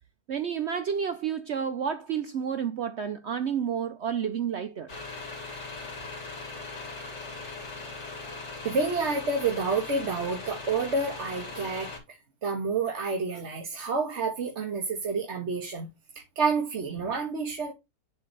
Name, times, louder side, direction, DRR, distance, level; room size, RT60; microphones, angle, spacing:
voice 1, 0.3-4.9, right 7 dB, 75° right, 0.6 m, -30 dB
sound 1, 4.9-12.0, left 3 dB, 40° left, 2.5 m, -39 dB
voice 2, 8.6-11.9 12.4-15.9 16.4-17.7, right 4 dB, 45° right, 1.4 m, -29 dB
10.5 x 4.0 x 3.1 m
omnidirectional pair, 1.8 m